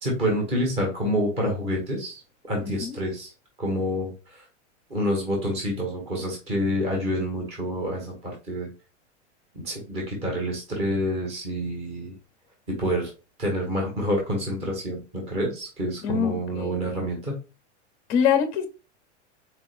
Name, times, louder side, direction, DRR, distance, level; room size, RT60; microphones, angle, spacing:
voice 1, 0.0-2.2 2.5-3.3 3.6-4.4 4.9-8.7 9.5-12.1 12.7-13.1 13.4-17.3, equal, 15° right, 1.2 m, -28 dB
voice 2, 2.6-3.0 16.0-16.8 18.1-18.7, left 8 dB, 20° left, 0.6 m, -24 dB
4.3 x 3.6 x 2.5 m
supercardioid pair, 175°, 36 cm